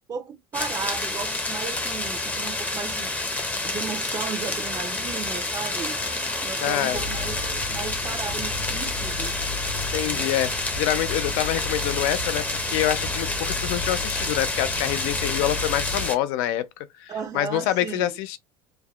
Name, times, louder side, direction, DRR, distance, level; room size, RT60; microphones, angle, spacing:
voice 1, 0.1-6.0 6.4-7.4 7.7-9.3 10.1-10.2 17.1-18.1, right 6 dB, 30° right, 0.5 m, -35 dB
sound 1, 0.5-16.2, left 2 dB, 10° left, 0.6 m, -29 dB
sound 2, 5.6-7.8, right 10 dB, 75° right, 1.1 m, -44 dB
voice 2, 6.6-7.0 9.9-16.7 17.0-18.4, left 13 dB, 80° left, 0.5 m, -26 dB
sound 3, 6.9-16.1, left 3 dB, 60° left, 1.4 m, -35 dB
3.3 x 2.1 x 2.3 m
supercardioid pair, 120°, 13 cm